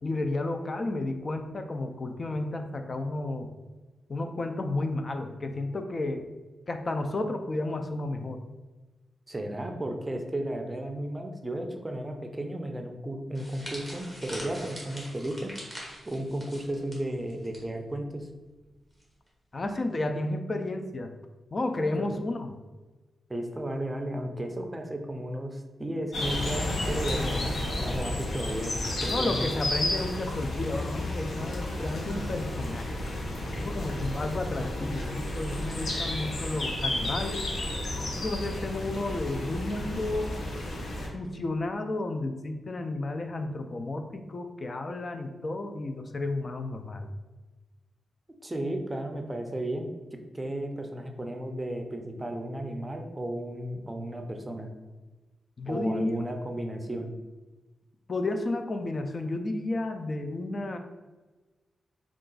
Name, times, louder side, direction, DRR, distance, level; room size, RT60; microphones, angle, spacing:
voice 1, 0.0-3.5 4.1-6.2 6.7-8.4 19.5-21.1 21.5-22.5 29.1-33.1 33.5-37.5 38.0-40.4 41.1-47.1 55.6-56.1 58.1-60.8, left 2 dB, 40° left, 6 dB, 0.4 m, -32 dB
voice 2, 9.3-15.5 16.0-18.3 21.7-22.1 23.3-29.5 34.3-34.9 48.4-54.7 55.7-57.1, right 1 dB, 20° right, 4 dB, 0.5 m, -34 dB
sound 1, 13.3-17.6 17.9-18.1 19.0-19.3, equal, 20° left, 1.3 m, -43 dB
sound 2, 26.1-41.1, left 1 dB, 65° left, 0.8 m, -32 dB
3.7 x 2.4 x 3.8 m, 1.2 s
cardioid pair, 90°, 0 cm